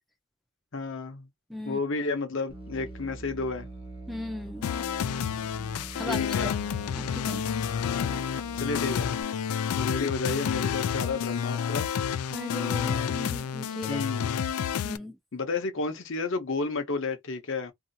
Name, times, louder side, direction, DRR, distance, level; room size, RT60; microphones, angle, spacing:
voice 1, 0.7-1.3 1.7-3.7 6.1-6.5 8.5-9.1 9.7-11.9 13.9-14.3 15.3-17.7, left 3 dB, 55° left, 0.7 m, -31 dB
Musical instrument, 2.5-9.2, right 2 dB, 25° right, 0.8 m, -43 dB
voice 2, 4.1-4.7 6.0-6.6 6.9-7.5 12.3-14.0 14.8-15.2, left 1 dB, ahead, 0.4 m, -37 dB
sound 1, 4.6-15.0, left 8 dB, 80° left, 0.3 m, -30 dB
2.7 x 2.4 x 2.6 m
head